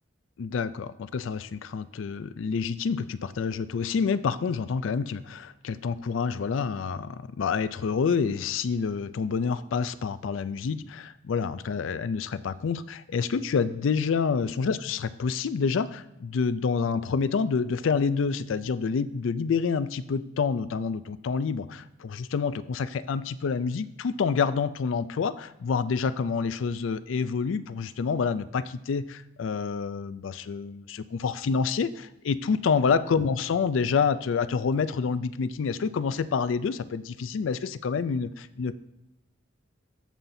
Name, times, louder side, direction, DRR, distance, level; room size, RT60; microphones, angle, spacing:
voice 1, 0.4-38.8, left 5 dB, 80° left, 14 dB, 0.4 m, -28 dB
14.5 x 5.7 x 2.7 m, 0.90 s
head